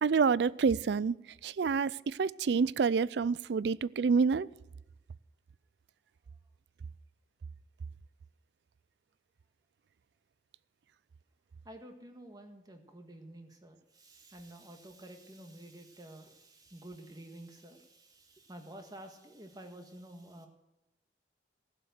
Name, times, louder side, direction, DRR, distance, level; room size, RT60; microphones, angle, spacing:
voice 1, 0.0-1.1 1.4-4.5, right 5 dB, 70° right, 0.4 m, -28 dB
voice 2, 11.6-20.5, right 1 dB, 20° right, 1.6 m, -50 dB
16.5 x 7.6 x 8.0 m
head